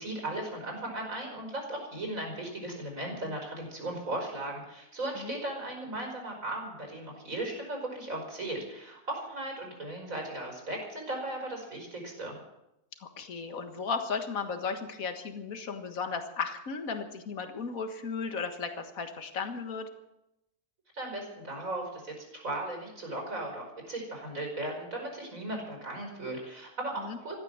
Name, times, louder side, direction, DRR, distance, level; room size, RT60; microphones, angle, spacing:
voice 1, 0.0-12.4 20.9-27.4, right 1 dB, 55° right, 1 dB, 5.6 m, -37 dB
voice 2, 13.0-19.9 27.0-27.2, left 5 dB, 60° left, 7 dB, 2.0 m, -35 dB
15.5 x 12.5 x 7.4 m, 0.86 s
omnidirectional pair, 1.7 m